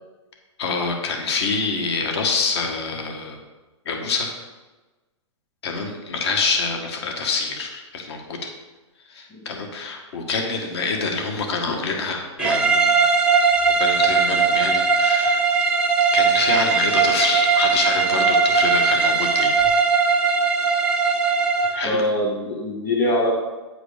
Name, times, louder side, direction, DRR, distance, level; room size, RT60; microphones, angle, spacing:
voice 1, 0.6-3.4 3.8-4.3 5.6-8.4 9.1-13.0 13.8-15.4 16.1-19.6 21.7-22.0, left 4 dB, 60° left, 2 dB, 1.6 m, -26 dB
sound 1, 12.4-21.9, right 5 dB, 5° right, 0.6 m, -19 dB
voice 2, 21.8-23.3, left 1 dB, 25° left, -2 dB, 1.7 m, -22 dB
9.2 x 4.9 x 5.1 m, 1.2 s
hypercardioid pair, 155°, 16 cm